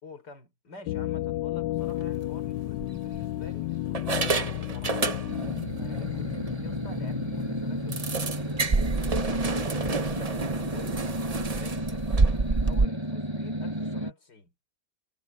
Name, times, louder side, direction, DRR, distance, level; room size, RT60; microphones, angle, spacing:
voice 1, 0.0-4.0 4.3-11.0 11.5-12.1 12.4-14.5, left 3 dB, 50° left, 6.3 m, -49 dB
sound 1, 0.9-9.5, left 15 dB, 70° left, 1.1 m, -33 dB
sound 2, 1.9-2.1 2.8-3.5 3.9-5.6 5.9-6.1 6.5-6.6 6.9-7.0 7.9-12.9, right 3 dB, 80° right, 0.3 m, -28 dB
sound 3, 5.3-14.1, right 1 dB, 10° right, 6.0 m, -33 dB
omnidirectional pair, 2.3 m